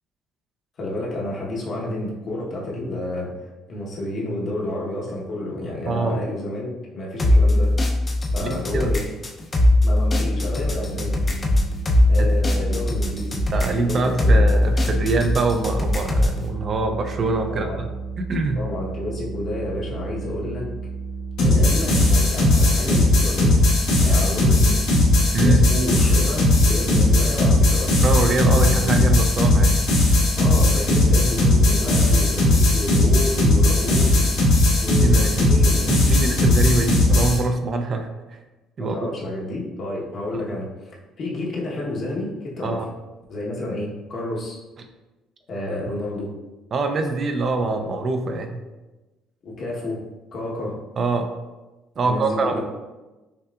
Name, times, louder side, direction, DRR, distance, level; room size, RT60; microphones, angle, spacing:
voice 1, 0.8-3.3 3.7-7.7 8.3-9.0 9.8-11.2 12.1-13.4 13.8-14.4 17.5-17.8 18.5-20.7 21.4-23.6 24.0-24.8 25.4-27.9 28.6-28.9 30.3-34.3 34.8-36.4 38.8-42.8 43.3-44.6 45.5-46.3 47.7-47.9 49.4-50.0 50.3-50.8 52.0-52.6, left 1 dB, 50° left, -4 dB, 1.1 m, -30 dB
voice 2, 5.9-6.2 8.4-8.9 12.2-12.3 13.5-17.9 18.2-18.6 25.3-25.6 28.0-29.9 35.0-35.5 35.9-38.1 38.8-39.0 42.6-42.9 46.7-48.6 51.0-51.3 52.0-52.6, right 3 dB, 45° right, 5 dB, 0.5 m, -24 dB
sound 1, 7.2-16.4, left 1 dB, 30° left, 0.6 m, -20 dB
sound 2, 10.6-22.1, right 4 dB, 85° right, 1.4 m, -33 dB
sound 3, 21.4-37.4, left 2 dB, 80° left, 1.2 m, -17 dB
5.5 x 2.4 x 2.4 m, 1.1 s
cardioid pair, 95°, 0 cm